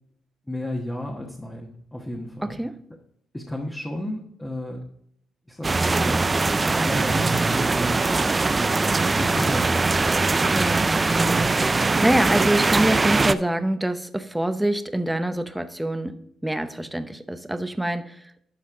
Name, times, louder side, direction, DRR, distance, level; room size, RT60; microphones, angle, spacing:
voice 1, 0.5-2.6 3.3-4.8 5.5-6.2 6.6-8.2 9.1-10.2, left 1 dB, 10° left, -1 dB, 1.3 m, -33 dB
sound 1, 5.6-13.3, right 3 dB, 25° right, 0.4 m, -21 dB
voice 2, 10.5-10.9 11.4-16.2 16.4-18.4, right 1 dB, 5° right, 9 dB, 0.8 m, -25 dB
12.0 x 4.2 x 3.7 m, 0.70 s
cardioid pair, 90°, 0 cm